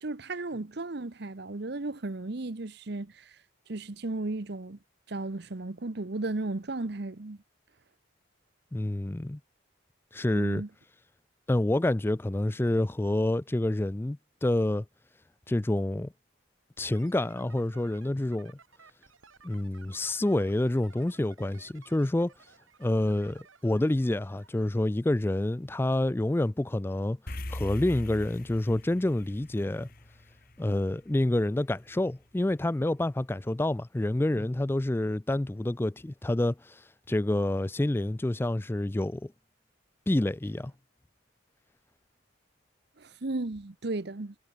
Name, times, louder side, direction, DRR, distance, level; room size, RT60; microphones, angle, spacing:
voice 1, 0.0-3.3 3.7-4.8 5.1-7.4 10.3-10.7 43.0-44.3, right 2 dB, 55° right, 0.9 m, -35 dB
voice 2, 8.7-9.4 10.1-10.6 11.5-14.8 15.5-16.1 16.8-18.5 19.4-22.3 22.8-27.2 27.5-29.9 30.6-39.3 40.1-40.7, left 1 dB, 10° left, 0.3 m, -28 dB
sound 1, 16.8-24.7, right 5 dB, 80° right, 4.8 m, -57 dB
sound 2, 27.3-31.8, left 1 dB, 45° left, 2.4 m, -41 dB
head